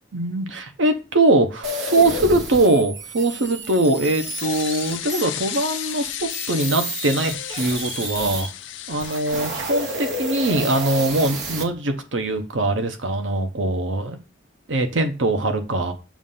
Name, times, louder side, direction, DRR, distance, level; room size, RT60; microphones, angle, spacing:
voice 1, 0.1-6.1 6.5-8.5 8.9-14.2 14.7-15.9, right 2 dB, 85° right, 0.9 m, -22 dB
sound 1, 1.6-8.5 8.9-11.6, right 1 dB, 60° right, 1.2 m, -31 dB
sound 2, 3.2-10.2, left 12 dB, 80° left, 0.5 m, -34 dB
7.2 x 2.5 x 5.5 m
head